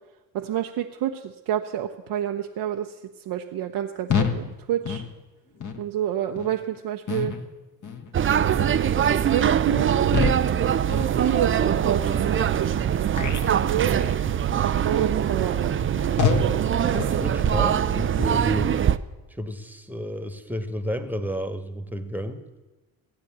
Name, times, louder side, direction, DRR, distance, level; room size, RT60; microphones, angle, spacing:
voice 1, 0.3-5.0 5.8-7.3 8.2-10.0 10.9-13.9 14.6-16.7, right 11 dB, 50° right, 3 dB, 0.9 m, -29 dB
sound 1, 4.1-4.4 4.8-5.1 5.6-5.8 6.3-6.5 7.1-7.4 7.8-8.1 8.6-8.8 9.3-9.5 10.1-10.5 10.9-11.2 11.6-11.8 12.4-12.5 13.1-13.5 13.9-14.2 14.7-14.9 15.4-15.5 16.2-16.5 16.9-17.2, left 6 dB, 35° left, 1.6 m, -27 dB
sound 2, 8.1-19.0, right 9 dB, 25° right, 0.5 m, -23 dB
voice 2, 16.9-18.7 19.3-22.4, equal, 5° right, 9 dB, 1.5 m, -31 dB
15.5 x 8.8 x 7.4 m, 1.2 s
hypercardioid pair, 50°, 50 cm